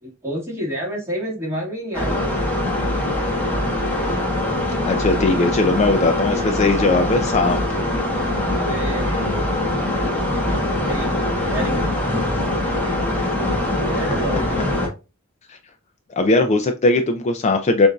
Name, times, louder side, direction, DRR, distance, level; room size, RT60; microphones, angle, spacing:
voice 1, 0.0-2.2 8.5-9.4 10.7-11.2 11.5-11.9 13.9-14.7, right 1 dB, 15° right, -4 dB, 1.7 m, -29 dB
sound 1, 1.9-14.9, left 1 dB, 5° left, 1.2 m, -22 dB
voice 2, 4.8-7.6 15.5-15.6 16.2-17.9, left 3 dB, 30° left, 6 dB, 0.4 m, -19 dB
6.8 x 2.6 x 2.3 m, 0.30 s
head